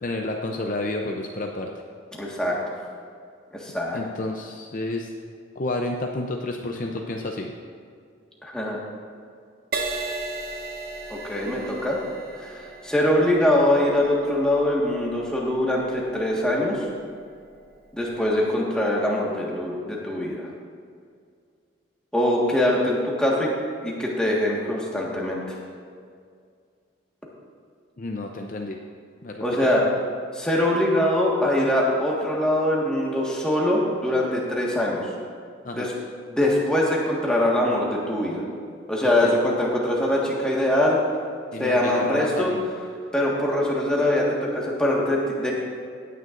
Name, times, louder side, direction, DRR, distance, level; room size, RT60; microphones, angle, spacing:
voice 1, 0.0-1.7 3.9-5.1 5.6-7.5 28.0-28.8 29.2-29.4 35.6-35.9 39.2-39.4 41.5-42.6, left 2 dB, 40° left, 2 dB, 0.6 m, -30 dB
voice 2, 2.2-2.8 3.5-4.0 8.4-8.8 11.1-12.0 12.4-16.8 17.9-20.5 22.1-23.5 23.8-25.6 29.4-29.8 30.3-35.1 35.7-35.9 36.3-38.4 38.9-41.0 41.6-42.5 43.1-45.5, left 1 dB, 5° left, -4 dB, 1.6 m, -23 dB
Crash cymbal, 9.7-17.4 18.0-18.3, right 3 dB, 45° right, 0.8 m, -36 dB
17.0 x 9.3 x 2.6 m, 2.2 s
head